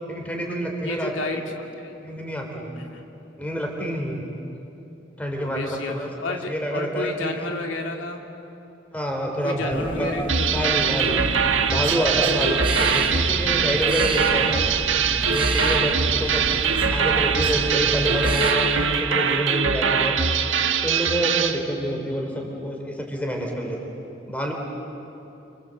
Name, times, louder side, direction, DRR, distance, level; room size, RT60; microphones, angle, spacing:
voice 1, 0.0-1.1 2.0-2.7 3.4-4.2 5.2-7.4 8.9-10.1 10.5-11.2 11.7-14.6 15.3-16.4 16.9-20.2 20.8-24.5, equal, 5° left, 1 dB, 4.1 m, -27 dB
voice 2, 0.8-1.9 2.7-3.1 5.4-8.2 9.4-10.9 13.3-13.8, left 2 dB, 75° left, 2 dB, 2.2 m, -32 dB
sound 1, 9.7-18.5, right 2 dB, 25° right, 4.1 m, -31 dB
sound 2, 10.3-21.6, right 6 dB, 70° right, 1.6 m, -22 dB
29.0 x 25.0 x 8.0 m, 2.9 s
head